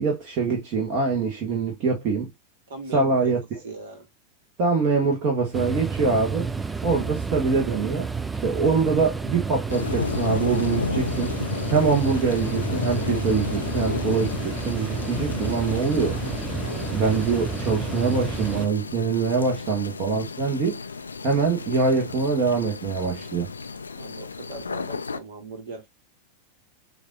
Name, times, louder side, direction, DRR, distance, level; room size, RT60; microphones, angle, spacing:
voice 1, 0.0-2.3 2.9-3.6 4.6-6.5 6.8-8.1 8.4-11.4 11.7-16.2 16.9-20.8 21.2-23.5, right 4 dB, 40° right, 1.4 m, -24 dB
voice 2, 2.7-3.2 3.6-4.1 23.9-25.9, right 3 dB, 60° right, 1.8 m, -39 dB
sound 1, 5.5-18.7, right 4 dB, 10° right, 0.3 m, -31 dB
sound 2, 9.7-25.2, left 4 dB, 75° left, 0.4 m, -32 dB
6.9 x 2.7 x 2.4 m
figure-of-eight pair, 90°, 0 cm